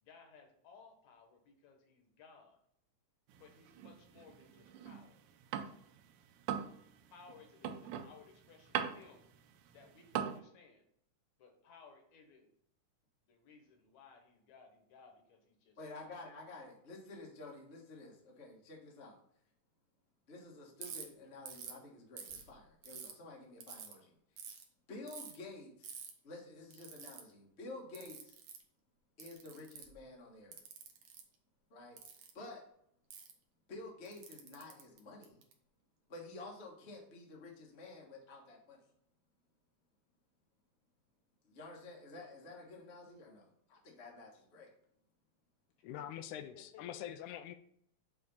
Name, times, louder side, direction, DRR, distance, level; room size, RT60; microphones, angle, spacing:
voice 1, 0.0-2.6 3.4-5.2 7.1-9.2 9.7-10.8 11.4-12.5 13.3-16.1 46.5-46.8, left 5 dB, 70° left, 3 dB, 2.4 m, -60 dB
sound 1, 3.3-6.0 6.3-10.4, right 9 dB, 85° right, 2.1 m, -41 dB
voice 2, 15.8-19.2 20.3-24.2 24.9-28.4 29.2-30.6 31.7-32.0 32.3-32.6 33.7-35.4 36.1-38.8 41.4-44.7, left 2 dB, 40° left, -2 dB, 0.9 m, -51 dB
Ratchet pawl, 20.8-21.0 21.5-21.8 22.2-23.1 23.6-23.9 24.4-24.6 25.1-25.4 25.8-26.1 26.7-27.2 28.0-28.6 29.2-30.0 30.5-31.2 32.0-32.3 33.1-33.3 34.1-35.5, right 7 dB, 65° right, 1.8 m, -48 dB
voice 3, 45.8-47.6, left 11 dB, 85° left, 10 dB, 2.0 m, -44 dB
6.7 x 3.6 x 5.4 m, 0.69 s
omnidirectional pair, 3.5 m